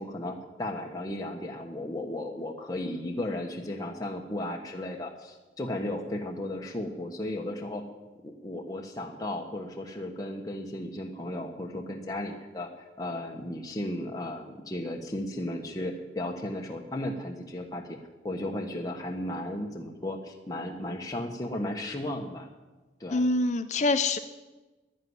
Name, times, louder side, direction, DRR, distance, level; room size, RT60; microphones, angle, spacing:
voice 1, 0.0-7.8 8.2-12.7 13.0-18.0 18.2-22.5 23.0-23.3, left 1 dB, 20° left, 1 dB, 1.2 m, -35 dB
voice 2, 23.1-24.2, left 2 dB, 40° left, 9 dB, 0.6 m, -25 dB
11.5 x 10.5 x 9.7 m, 1.2 s
head